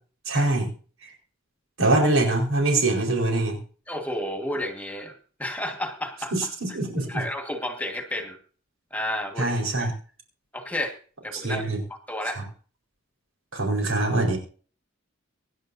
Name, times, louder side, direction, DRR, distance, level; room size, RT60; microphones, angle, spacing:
voice 1, 0.2-0.7 1.0-1.1 1.8-3.6 6.3-7.2 9.4-9.9 11.3-11.8 12.2-12.4 13.5-14.4, right 2 dB, 85° right, 1 dB, 4.8 m, -24 dB
voice 2, 3.9-6.5 7.1-8.4 8.9-9.9 10.5-10.9 11.2-11.6 12.1-12.4, left 1 dB, 10° left, 4 dB, 1.8 m, -31 dB
24.0 x 10.5 x 2.7 m, 0.40 s
head